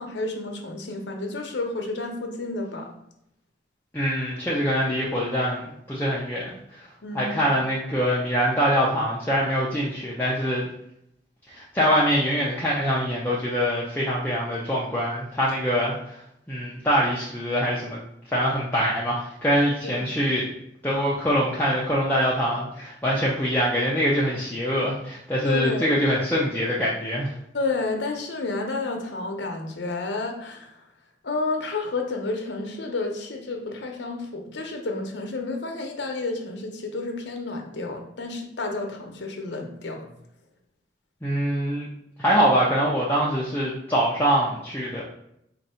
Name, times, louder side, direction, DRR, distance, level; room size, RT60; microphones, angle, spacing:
voice 1, 0.0-2.9 7.0-7.4 19.8-20.0 25.4-25.9 27.5-30.7 31.2-40.0, left 3 dB, 85° left, 3 dB, 0.8 m, -30 dB
voice 2, 3.9-6.8 7.1-10.7 11.5-16.2 16.5-18.0 18.3-20.5 20.8-27.3 41.2-41.9 42.2-45.0, equal, 10° left, -7 dB, 0.6 m, -24 dB
4.4 x 2.6 x 4.3 m, 0.78 s
head